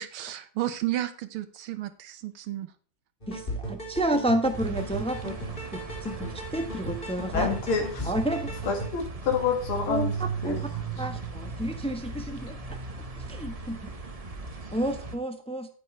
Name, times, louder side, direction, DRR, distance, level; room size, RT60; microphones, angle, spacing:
voice 1, 0.0-2.7, right 14 dB, 80° right, 9 dB, 1.9 m, -32 dB
sound 1, 3.2-8.9, right 1 dB, 25° left, 3.5 m, -36 dB
voice 2, 3.3-5.3 5.7-7.5 8.0-8.7 9.9-10.7 11.0-13.8 14.7-15.7, right 1 dB, 5° left, 6 dB, 0.5 m, -31 dB
sound 2, 4.5-15.2, right 4 dB, 25° right, 0.8 m, -37 dB
voice 3, 7.3-8.1 8.7-10.1 10.4-10.6, left 6 dB, 75° left, 2 dB, 2.8 m, -28 dB
10.0 x 8.8 x 3.2 m, 0.43 s
omnidirectional pair, 2.4 m